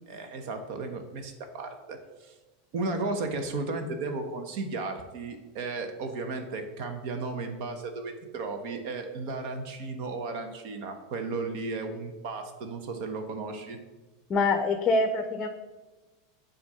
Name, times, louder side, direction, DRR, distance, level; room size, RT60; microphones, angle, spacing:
voice 1, 0.1-2.3 2.7-13.8, right 3 dB, 60° right, 6 dB, 0.8 m, -34 dB
voice 2, 14.3-15.5, left 3 dB, 30° left, 7 dB, 0.5 m, -25 dB
6.9 x 2.5 x 5.5 m, 1.2 s
hypercardioid pair, 95°, 0 cm